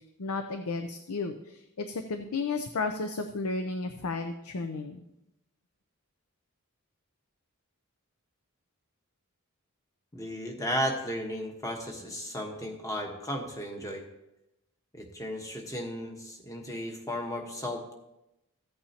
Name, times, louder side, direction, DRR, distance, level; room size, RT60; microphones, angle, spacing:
voice 1, 0.2-5.0, left 3 dB, 75° left, 6 dB, 0.6 m, -33 dB
voice 2, 10.1-14.0 14.9-17.9, equal, 15° left, 2 dB, 1.3 m, -34 dB
14.5 x 8.6 x 2.9 m, 0.90 s
head